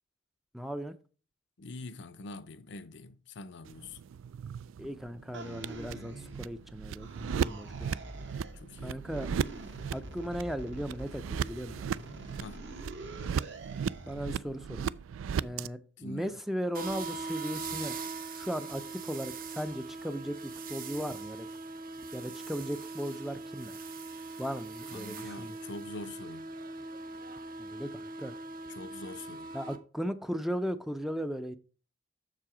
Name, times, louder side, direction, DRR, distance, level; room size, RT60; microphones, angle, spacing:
voice 1, 0.5-0.9 4.8-8.0 8.8-9.3 9.9-11.8 14.1-14.9 15.4-18.0 18.3-21.5 22.1-23.8 24.4-25.6 27.6-28.4 29.5-31.6, equal, ahead, 0.4 m, -37 dB
voice 2, 1.6-4.0 8.5-9.0 12.4-12.7 16.0-16.4 24.9-26.5 28.7-29.5, left 2 dB, 65° left, 0.6 m, -44 dB
sound 1, 3.6-15.7, right 7 dB, 85° right, 0.3 m, -37 dB
sound 2, 5.3-6.6 7.0-8.6 9.1-14.2, right 2 dB, 65° right, 1.8 m, -45 dB
sound 3, 16.7-29.8, right 3 dB, 45° right, 0.8 m, -41 dB
7.5 x 6.8 x 4.9 m
head